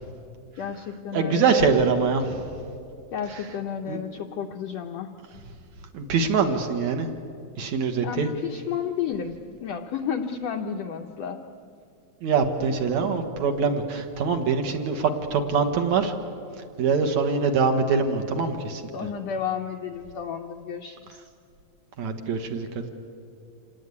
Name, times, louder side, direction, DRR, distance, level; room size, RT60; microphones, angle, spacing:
voice 1, 0.6-1.7 3.1-5.1 8.0-11.4 18.9-21.2, left 7 dB, 75° left, 4 dB, 1.5 m, -32 dB
voice 2, 1.1-2.4 3.9-4.0 5.9-7.1 7.6-8.3 12.2-16.1 16.8-18.8 22.0-22.9, right 5 dB, 60° right, 5 dB, 2.3 m, -24 dB
26.5 x 18.5 x 9.6 m, 2.5 s
omnidirectional pair, 4.0 m